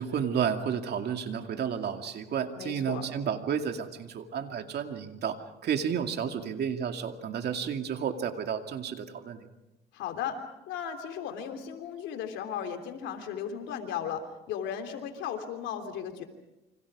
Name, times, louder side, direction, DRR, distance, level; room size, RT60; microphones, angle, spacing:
voice 1, 0.0-5.4 5.6-9.5, right 7 dB, 60° right, 5 dB, 2.4 m, -31 dB
voice 2, 2.6-3.0 9.9-10.4 10.7-16.2, left 8 dB, 90° left, 6 dB, 3.4 m, -36 dB
29.0 x 25.5 x 4.9 m, 0.96 s
cardioid pair, 95°, 19 cm